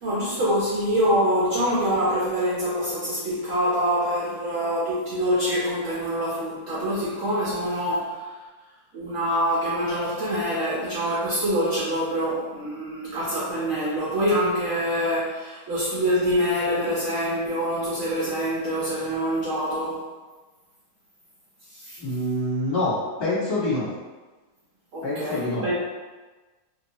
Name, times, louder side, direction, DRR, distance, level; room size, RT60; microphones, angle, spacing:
voice 1, 0.0-8.4 8.9-20.0 21.7-22.0 24.9-25.8, equal, 65° right, -8 dB, 0.9 m, -25 dB
voice 2, 22.0-23.9 25.0-25.6, left 1 dB, 20° left, -9 dB, 1.0 m, -26 dB
2.7 x 2.2 x 2.8 m, 1.3 s
omnidirectional pair, 1.7 m